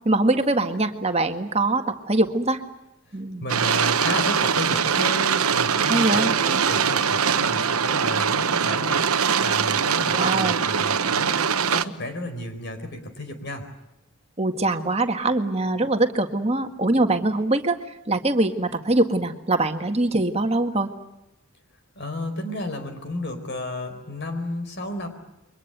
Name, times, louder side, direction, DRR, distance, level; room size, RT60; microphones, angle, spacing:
voice 1, 0.1-2.6 3.1-3.4 5.8-6.3 10.1-10.6 14.4-17.8 18.1-20.9, right 2 dB, 30° right, 6 dB, 1.8 m, -23 dB
voice 2, 3.4-13.7 22.0-25.1, left 1 dB, 50° left, 7 dB, 4.5 m, -32 dB
sound 1, 3.5-11.8, right 7 dB, 85° right, 1.1 m, -22 dB
29.0 x 24.0 x 8.1 m, 0.92 s
head